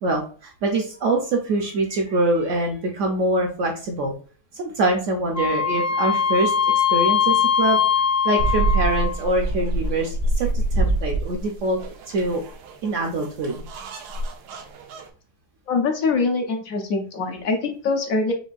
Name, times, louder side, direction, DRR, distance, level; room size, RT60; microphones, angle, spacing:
voice 1, 0.0-4.1 4.5-7.8 8.2-12.4 12.8-13.6, right 2 dB, 65° right, 2 dB, 0.8 m, -24 dB
Wind instrument woodwind instrument, 5.3-9.3, left 7 dB, 35° left, 0.6 m, -21 dB
sound 1, 8.4-15.1, right 2 dB, 80° right, 1.1 m, -26 dB
voice 2, 15.7-18.3, left 4 dB, 70° left, 4 dB, 0.9 m, -23 dB
5.1 x 2.2 x 2.4 m, 0.40 s
omnidirectional pair, 1.7 m